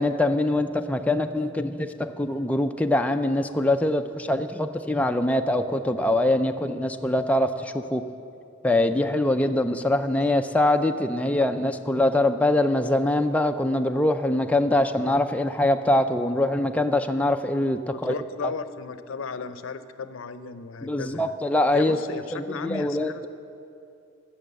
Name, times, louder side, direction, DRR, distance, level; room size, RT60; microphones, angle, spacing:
voice 1, 0.0-8.0 8.6-18.1 20.8-22.0 22.3-23.1, left 1 dB, 5° left, 6 dB, 0.3 m, -23 dB
voice 2, 17.9-21.4 21.7-23.3, left 4 dB, 85° left, 12 dB, 0.5 m, -35 dB
12.0 x 7.2 x 7.6 m, 2.7 s
head